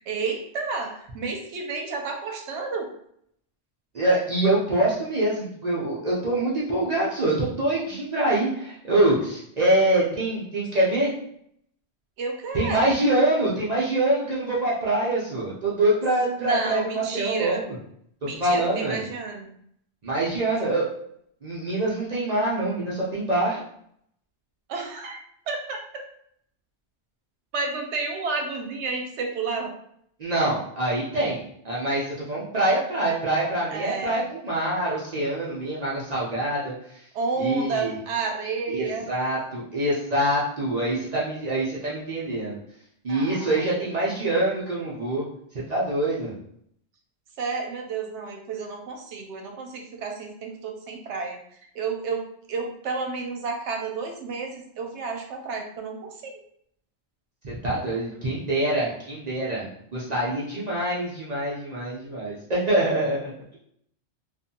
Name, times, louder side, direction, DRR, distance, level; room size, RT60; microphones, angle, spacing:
voice 1, 0.0-2.9 12.2-12.9 16.4-17.7 18.2-19.5 24.7-25.2 25.5-26.0 27.5-29.7 33.7-34.2 37.1-39.1 43.1-44.2 47.4-51.4 51.7-56.4, right 4 dB, 80° right, 3 dB, 0.9 m, -31 dB
voice 2, 3.9-11.1 12.5-17.8 18.4-19.0 20.0-20.9 21.4-23.6 30.2-37.0 37.4-37.9 38.7-42.6 43.0-45.2 45.7-46.3 57.4-63.6, right 1 dB, 45° right, -6 dB, 0.6 m, -25 dB
2.6 x 2.4 x 2.6 m, 0.68 s
omnidirectional pair, 1.2 m